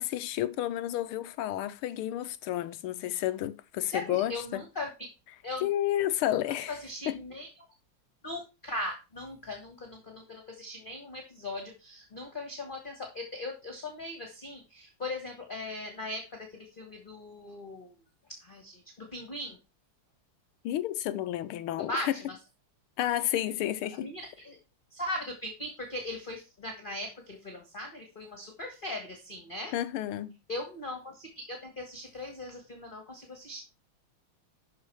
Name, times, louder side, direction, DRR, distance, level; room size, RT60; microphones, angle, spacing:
voice 1, 0.0-4.6 5.6-6.7 7.1-7.2 20.6-22.1 23.0-24.1 29.7-30.4, left 13 dB, 80° left, 1.5 m, -31 dB
voice 2, 3.9-5.1 5.4-5.7 6.7-7.5 8.2-18.0 18.3-19.6 21.8-22.4 24.0-24.6 24.9-29.7 30.5-33.6, left 1 dB, 25° left, 1.7 m, -39 dB
12.0 x 5.1 x 4.7 m
omnidirectional pair, 2.4 m